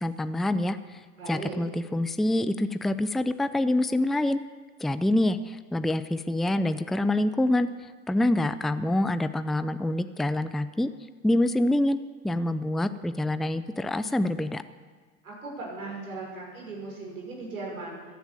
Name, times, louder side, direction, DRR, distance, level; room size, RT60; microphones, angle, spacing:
voice 1, 0.0-1.0 1.3-4.4 4.8-7.7 8.1-10.9 11.2-12.0 12.2-14.6, left 1 dB, ahead, 12 dB, 0.5 m, -26 dB
voice 2, 1.2-1.6 15.2-18.0, right 3 dB, 90° right, -3 dB, 6.3 m, -38 dB
15.0 x 10.5 x 8.8 m, 1.5 s
hypercardioid pair, 90°, 41 cm